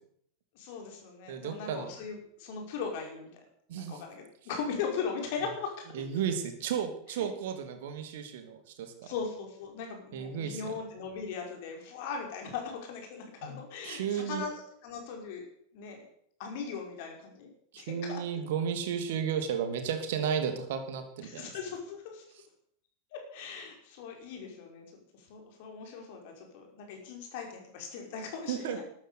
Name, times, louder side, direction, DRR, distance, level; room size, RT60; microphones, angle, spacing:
voice 1, 0.6-3.4 3.7-6.0 9.0-15.4 15.7-16.0 16.4-18.2 21.2-22.2 23.1-24.9 25.3-28.8, left 5 dB, 50° left, 2 dB, 5.4 m, -39 dB
voice 2, 1.3-1.9 3.7-4.0 5.9-8.9 10.1-10.7 13.4-14.5 17.7-21.4 28.5-28.8, right 7 dB, 55° right, 7 dB, 2.7 m, -33 dB
13.5 x 12.0 x 8.4 m, 0.67 s
figure-of-eight pair, 90°, 0 cm